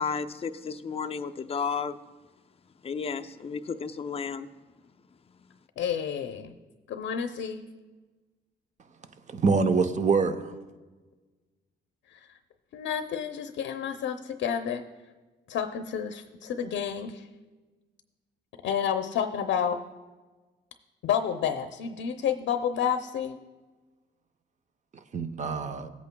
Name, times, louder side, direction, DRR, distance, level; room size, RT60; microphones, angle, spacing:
voice 1, 0.0-2.0 2.8-4.5, left 5 dB, 30° left, 0.5 m, -32 dB
voice 2, 5.8-6.5 6.9-7.7 12.1-12.2 12.7-14.8 15.5-17.3 18.6-19.8 21.0-23.4, left 8 dB, 70° left, 0.7 m, -30 dB
voice 3, 9.3-10.5 25.1-25.9, right 4 dB, 35° right, 0.7 m, -25 dB
17.0 x 8.3 x 2.2 m
cardioid pair, 90°, 20 cm